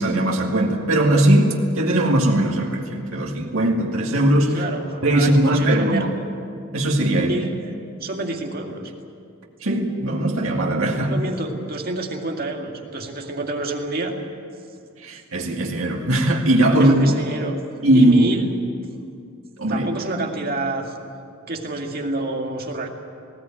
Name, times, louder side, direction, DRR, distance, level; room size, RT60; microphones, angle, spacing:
voice 1, 0.0-4.6 5.0-6.1 6.7-7.3 9.6-11.2 15.0-17.0 17.8-18.2 19.6-19.9, right 1 dB, 80° right, 0 dB, 2.3 m, -19 dB
voice 2, 4.5-6.1 7.1-7.6 8.0-8.9 11.1-14.1 16.8-17.6 17.9-18.5 19.7-20.9 21.5-22.9, right 2 dB, 45° right, 2 dB, 2.2 m, -28 dB
20.0 x 16.5 x 9.1 m, 2.4 s
head